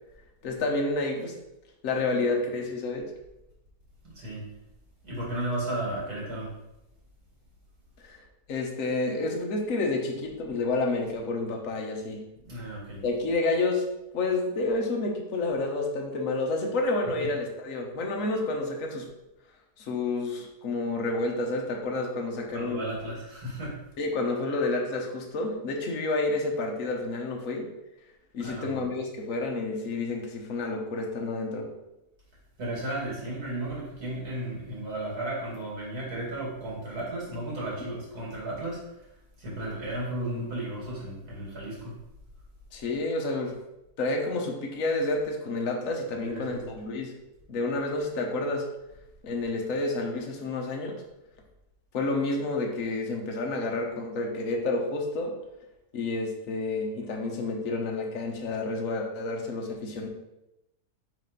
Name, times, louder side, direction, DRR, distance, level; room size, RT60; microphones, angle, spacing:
voice 1, 0.4-1.3 1.8-3.1 8.0-8.2 8.5-12.2 13.0-13.8 14.1-19.1 19.8-22.8 24.0-27.7 28.3-31.7 42.7-43.6 44.0-47.1 47.5-48.6 49.2-51.0 51.9-55.3 55.9-60.1, left 2 dB, 60° left, 0 dB, 1.3 m, -29 dB
voice 2, 4.0-4.5 5.0-6.5 12.4-13.0 17.2-17.3 22.5-23.8 28.4-28.9 32.6-39.1 39.4-41.9 46.1-46.7, right 1 dB, 75° right, -5 dB, 2.8 m, -34 dB
4.8 x 3.9 x 5.3 m, 0.91 s
omnidirectional pair, 1.6 m